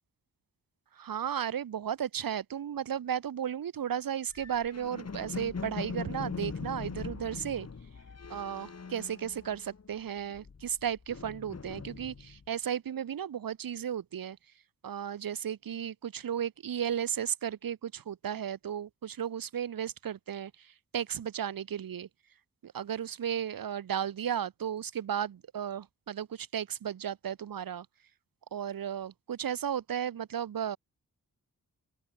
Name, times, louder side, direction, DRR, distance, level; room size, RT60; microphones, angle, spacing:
voice 1, 1.0-7.7 8.3-14.4 14.8-22.1 22.6-27.9 28.5-30.8, right 9 dB, 75° right, 1.2 m, -34 dB
sound 1, 4.3-9.9 10.2-12.5, left 5 dB, 45° left, 5.0 m, -41 dB
open air
wide cardioid pair, 125°, 35 cm